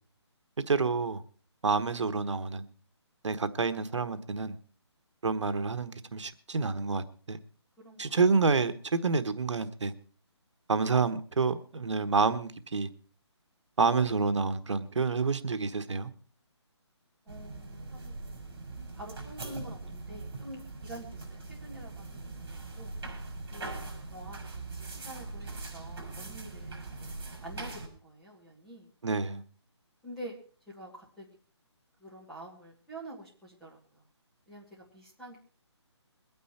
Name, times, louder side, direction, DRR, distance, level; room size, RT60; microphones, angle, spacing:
voice 1, 0.7-1.2 1.6-2.7 3.2-4.6 5.2-7.4 8.0-9.9 10.7-12.9 13.8-16.1 29.0-29.4, right 4 dB, 80° right, 1.3 m, -28 dB
voice 2, 7.8-8.1 17.2-18.2 18.9-22.9 23.5-28.9 30.0-30.4 30.7-31.3 32.0-34.0 34.5-35.4, right 1 dB, ahead, 1.7 m, -47 dB
sound 1, 17.3-27.9, right 3 dB, 50° right, 5.6 m, -41 dB
22.0 x 9.4 x 4.3 m
hypercardioid pair, 180°, 15 cm